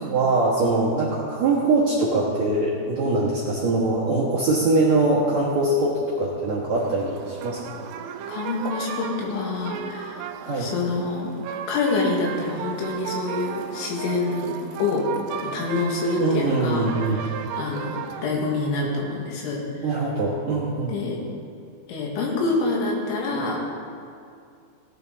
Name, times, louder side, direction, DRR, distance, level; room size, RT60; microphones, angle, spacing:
voice 1, 0.0-7.6 10.4-10.7 16.2-17.2 19.8-20.9, right 2 dB, 75° right, -7 dB, 1.6 m, -22 dB
sound 1, 6.7-18.3, right 8 dB, 90° right, 3.1 m, -35 dB
voice 2, 8.3-10.2 10.6-11.3 11.7-15.0 15.4-16.9 17.2-17.3 17.6-19.6 20.9-21.2 21.9-23.6, left 3 dB, 75° left, -2 dB, 4.3 m, -26 dB
16.5 x 10.0 x 4.0 m, 2.3 s
omnidirectional pair, 5.6 m